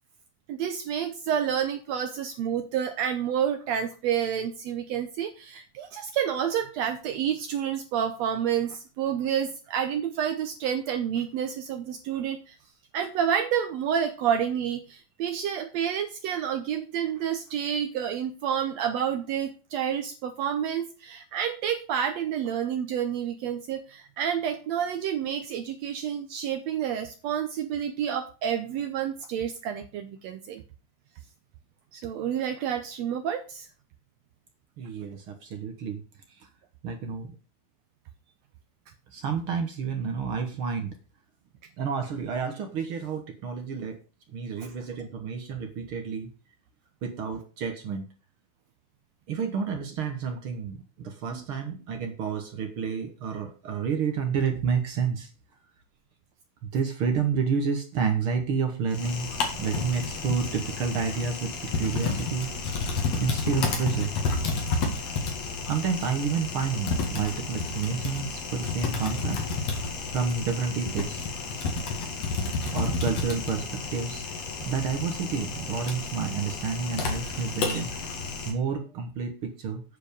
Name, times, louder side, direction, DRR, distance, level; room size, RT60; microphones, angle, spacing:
voice 1, 0.5-12.6 12.9-30.6 31.9-33.7 44.6-44.7 51.3-51.4, right 9 dB, 75° right, 8 dB, 1.7 m, -29 dB
voice 2, 34.8-36.0 36.4-36.5 36.8-37.4 39.1-41.0 41.8-44.0 44.3-46.3 47.0-48.0 49.3-55.3 56.6-59.3 59.6-62.5 63.2-64.1 65.7-69.4 70.1-71.3 72.7-74.3 74.6-79.8, right 6 dB, 55° right, 5 dB, 1.6 m, -30 dB
Typing, 58.9-78.5, left 4 dB, 55° left, 2.9 m, -31 dB
8.9 x 5.0 x 6.6 m, 0.35 s
omnidirectional pair, 3.6 m